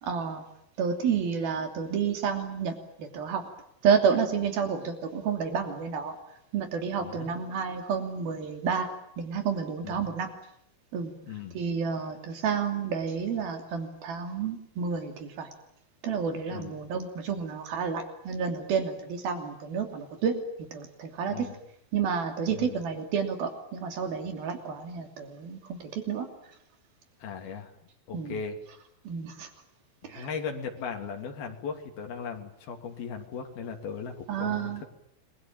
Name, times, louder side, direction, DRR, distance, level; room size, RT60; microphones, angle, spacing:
voice 1, 0.0-0.4 0.8-2.7 3.0-3.4 3.8-6.1 6.5-8.9 9.2-10.3 10.9-11.1 11.5-15.5 16.0-20.3 20.7-21.5 21.9-26.3 28.1-28.4 29.0-29.5 30.0-30.3 34.3-34.8, right 6 dB, 80° right, 6 dB, 4.8 m, -30 dB
voice 2, 7.0-7.3 9.8-10.1 11.2-11.6 16.5-16.8 21.3-21.6 22.5-22.8 27.2-27.7 28.1-28.6 30.0-34.8, left 6 dB, 90° left, 3 dB, 4.8 m, -37 dB
29.0 x 22.5 x 9.0 m, 0.75 s
omnidirectional pair, 4.2 m